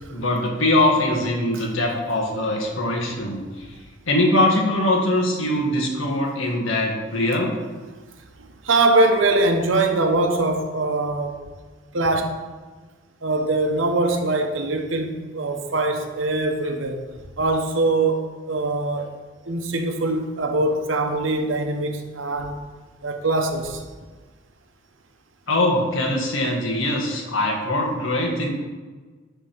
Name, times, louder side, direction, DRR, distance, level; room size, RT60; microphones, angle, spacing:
voice 1, 0.1-3.8 4.0-7.6 25.5-28.5, left 1 dB, 85° left, 1.6 m, -22 dB
voice 2, 8.4-11.4 11.9-12.4 13.2-17.0 17.4-19.1 19.5-22.6 23.0-23.8, right 2 dB, 80° right, 0.9 m, -22 dB
9.9 x 3.6 x 6.1 m
head